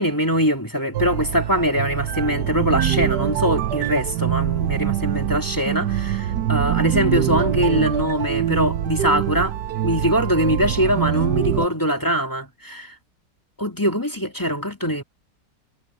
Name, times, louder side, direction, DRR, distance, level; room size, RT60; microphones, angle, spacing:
voice 1, 0.0-9.6 9.8-12.9 13.6-15.0, equal, 10° left, 2.8 m, -22 dB
sound 1, 0.9-11.7, right 11 dB, 70° right, 1.4 m, -24 dB
omnidirectional pair, 1.9 m